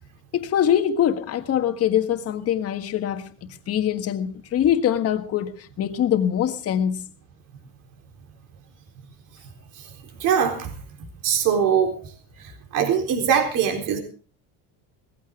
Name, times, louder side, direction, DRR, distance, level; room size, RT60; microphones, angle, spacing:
voice 1, 0.3-3.3 3.7-7.1, left 10 dB, 40° left, 1.6 m, -23 dB
voice 2, 10.2-10.8 11.2-12.0 12.4-14.0, right 7 dB, 60° right, 4.0 m, -22 dB
19.0 x 15.5 x 3.7 m
cardioid pair, 130°, 35 cm